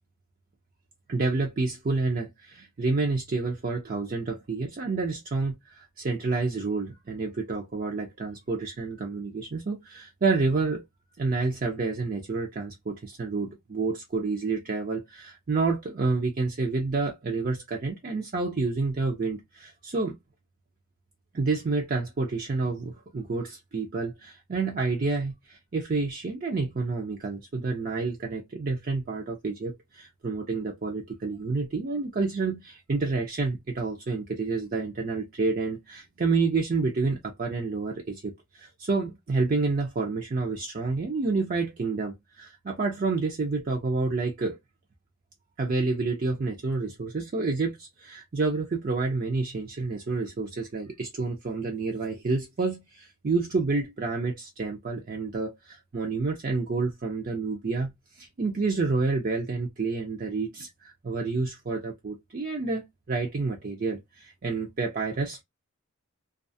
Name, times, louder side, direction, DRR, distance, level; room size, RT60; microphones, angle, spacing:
voice 1, 1.1-10.8 11.2-20.2 21.3-44.6 45.6-65.4, right 3 dB, 40° right, 0.5 m, -29 dB
2.4 x 2.3 x 2.5 m
head